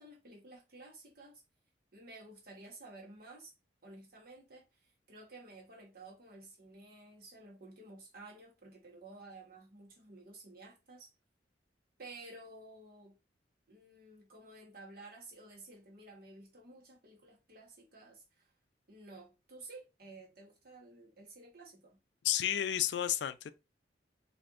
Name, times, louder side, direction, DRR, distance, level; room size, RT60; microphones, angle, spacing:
voice 1, 0.0-1.4 1.9-3.5 3.8-11.1 12.0-13.2 13.7-18.5 18.9-22.0, right 2 dB, 55° right, 1.2 m, -53 dB
voice 2, 22.2-23.5, left 11 dB, 70° left, 0.3 m, -31 dB
4.2 x 2.6 x 2.5 m
head